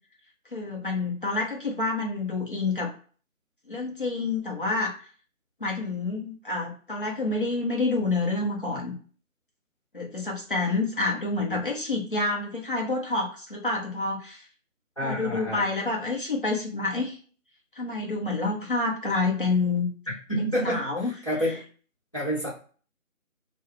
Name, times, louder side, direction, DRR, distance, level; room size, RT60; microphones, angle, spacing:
voice 1, 0.5-2.9 3.7-5.0 5.6-8.9 9.9-14.4 15.0-17.2 17.7-19.9 20.6-21.1 21.4-21.5, left 3 dB, 40° left, -2 dB, 0.8 m, -28 dB
voice 2, 15.0-15.6 20.1-21.6 22.1-22.5, equal, 25° left, -8 dB, 1.1 m, -29 dB
2.3 x 2.3 x 3.1 m, 0.41 s
figure-of-eight pair, 165°, 41 cm